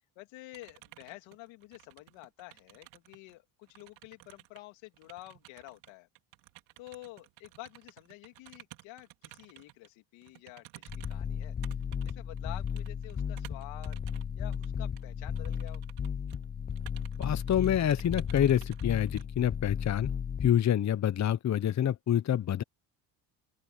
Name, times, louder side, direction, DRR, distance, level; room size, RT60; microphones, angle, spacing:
voice 1, 0.2-6.1 6.8-11.5 12.0-14.0 14.4-15.8, left 19 dB, 85° left, 2.9 m, -49 dB
sound 1, 0.5-3.4 3.6-9.9 10.2-14.2 14.5-14.7 15.0-15.1 15.4-16.4 16.7-19.2, right 20 dB, 85° right, 3.8 m, -54 dB
sound 2, 10.9-20.5, left 7 dB, 20° left, 0.5 m, -35 dB
voice 2, 17.2-20.1 20.4-22.6, left 10 dB, 40° left, 0.9 m, -27 dB
open air
supercardioid pair, 75°, 44 cm